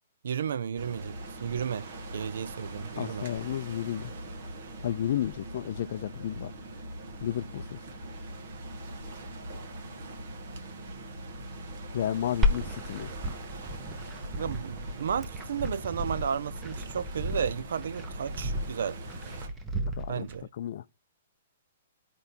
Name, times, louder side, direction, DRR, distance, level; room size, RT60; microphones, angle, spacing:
voice 1, 0.2-1.9 2.1-3.3 14.4-19.0 20.1-20.5, right 7 dB, 75° right, 0.4 m, -33 dB
sound 1, 0.8-19.5, right 1 dB, 55° right, 1.8 m, -42 dB
voice 2, 3.0-4.1 4.8-6.5 7.2-7.8 11.9-13.1 20.0-20.3 20.6-20.8, left 11 dB, 55° left, 0.4 m, -32 dB
Glass, 12.4-20.4, left 1 dB, 15° right, 0.9 m, -33 dB
15.5 x 5.3 x 2.8 m
hypercardioid pair, 160°, 0 cm